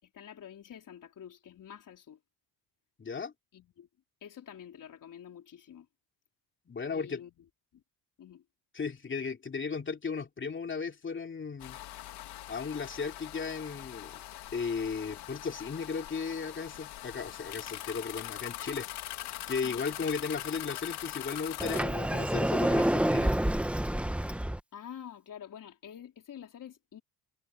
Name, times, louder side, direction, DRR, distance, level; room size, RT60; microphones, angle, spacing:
voice 1, 0.0-2.2 3.5-3.9 4.2-5.9 6.9-7.5 7.7-7.8 8.2-8.4 19.6-19.8 24.7-27.0, left 9 dB, 50° left, 4.4 m, -48 dB
voice 2, 3.0-3.3 6.7-7.2 8.7-11.8 12.5-14.2 14.5-18.9 19.5-23.3, left 5 dB, 30° left, 3.0 m, -35 dB
sound 1, 11.6-21.8, left 14 dB, 75° left, 3.3 m, -42 dB
Sliding door, 21.6-24.6, right 1 dB, 5° right, 1.2 m, -28 dB
cardioid pair, 105°, 40 cm